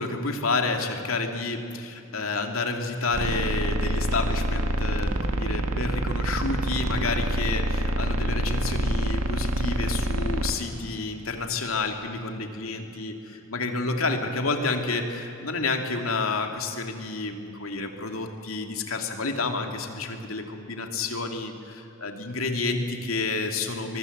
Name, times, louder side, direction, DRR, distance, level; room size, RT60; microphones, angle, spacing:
voice 1, 0.0-24.0, left 3 dB, 90° left, 4 dB, 2.7 m, -30 dB
sound 1, 3.1-10.5, right 1 dB, 85° right, 1.8 m, -26 dB
24.0 x 23.5 x 8.1 m, 2.7 s
head